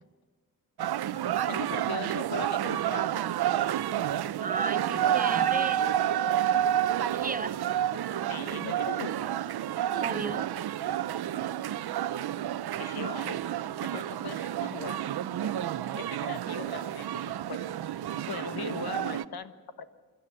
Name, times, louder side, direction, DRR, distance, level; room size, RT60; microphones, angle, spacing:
sound 1, 0.8-19.2, right 11 dB, 85° right, 0.7 m, -30 dB
voice 1, 1.5-3.2 8.3-9.2 12.8-13.4 13.8-15.0 15.4-15.5 15.9-17.7 18.1-19.9, left 7 dB, 75° left, 11 dB, 1.5 m, -40 dB
voice 2, 4.4-5.9 7.1-7.6 10.0-10.5, right 4 dB, 25° right, 12 dB, 0.8 m, -34 dB
26.0 x 13.5 x 9.8 m, 1.4 s
wide cardioid pair, 105°, 37 cm